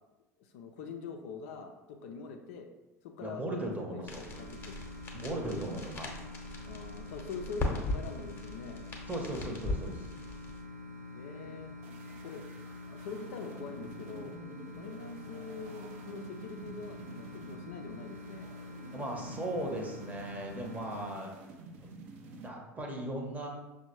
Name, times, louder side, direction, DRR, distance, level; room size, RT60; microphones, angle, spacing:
voice 1, 0.4-2.7 3.0-4.0 4.4-4.7 6.6-8.8 11.1-11.7 12.2-12.4 12.9-14.4 14.8-18.5, left 4 dB, 55° left, 4 dB, 0.4 m, -44 dB
voice 2, 3.2-4.2 5.1-6.1 9.1-10.1 18.9-21.4 21.8-21.9 22.3-23.5, right 1 dB, 15° right, 1 dB, 0.8 m, -37 dB
sound 1, 4.1-10.6, left 2 dB, 25° left, 0.8 m, -39 dB
sound 2, 4.2-21.1, left 3 dB, 85° right, 0.9 m, -46 dB
sound 3, 11.8-22.5, right 4 dB, 55° right, 0.5 m, -51 dB
6.0 x 2.2 x 2.9 m, 1.0 s
figure-of-eight pair, 75°, 9 cm